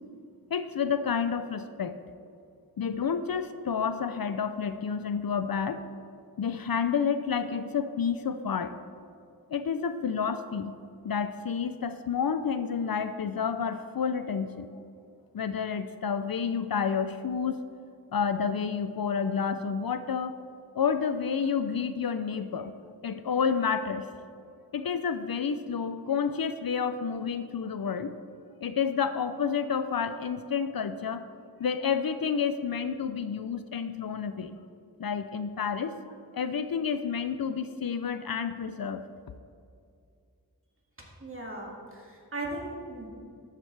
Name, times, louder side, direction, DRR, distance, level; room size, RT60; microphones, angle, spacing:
voice 1, 0.5-2.0 2.8-5.8 6.4-8.7 9.5-10.7 11.0-14.7 15.3-17.6 18.1-20.4 20.7-22.7 23.0-24.1 24.7-28.1 28.6-31.3 31.6-34.6 35.0-35.9 36.3-39.1, left 6 dB, 65° left, 11 dB, 0.5 m, -30 dB
voice 2, 41.2-43.1, right 2 dB, 35° right, -2 dB, 2.2 m, -38 dB
12.5 x 7.6 x 3.3 m, 2.4 s
wide cardioid pair, 45°, 39 cm